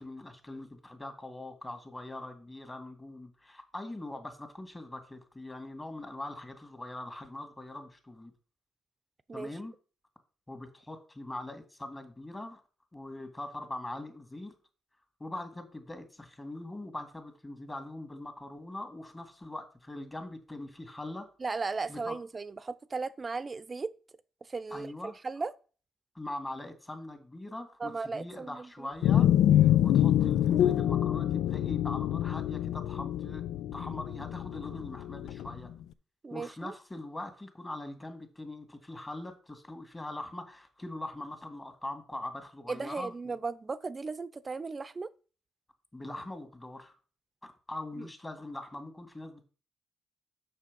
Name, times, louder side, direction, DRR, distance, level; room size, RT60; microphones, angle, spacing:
voice 1, 0.0-8.3 9.3-9.8 10.5-12.6 12.9-14.5 15.2-21.3 21.9-22.2 24.7-25.2 26.1-29.3 29.6-33.4 33.7-35.7 36.3-43.4 45.9-46.9 47.4-49.4, left 1 dB, 20° left, 2.2 m, -42 dB
voice 2, 21.4-23.9 24.5-24.9 25.2-25.5 27.8-28.9 29.5-29.7 36.2-36.7 42.7-45.1, right 4 dB, 35° right, 0.7 m, -36 dB
sound 1, 29.0-35.6, left 11 dB, 80° left, 0.4 m, -26 dB
6.6 x 5.7 x 5.4 m
supercardioid pair, 55°, 0 cm